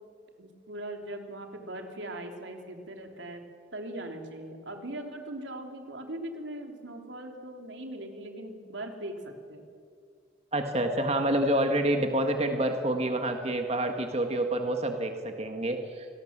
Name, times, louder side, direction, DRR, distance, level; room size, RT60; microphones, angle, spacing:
voice 1, 0.4-3.4 3.7-9.6, right 1 dB, 85° right, 4 dB, 3.2 m, -40 dB
voice 2, 10.5-16.1, right 1 dB, 35° right, 5 dB, 1.7 m, -28 dB
26.5 x 19.0 x 7.4 m, 2.2 s
head